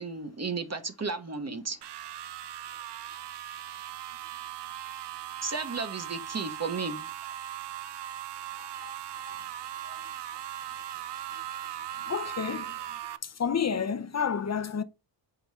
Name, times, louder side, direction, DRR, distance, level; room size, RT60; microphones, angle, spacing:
voice 1, 0.0-1.8 5.4-7.1, right 4 dB, 35° right, 1.1 m, -33 dB
sound 1, 1.8-13.2, right 11 dB, 65° right, 0.6 m, -39 dB
voice 2, 12.1-12.7 13.2-14.8, left 6 dB, 35° left, 0.6 m, -30 dB
5.2 x 3.8 x 4.7 m
cardioid pair, 90°, 45 cm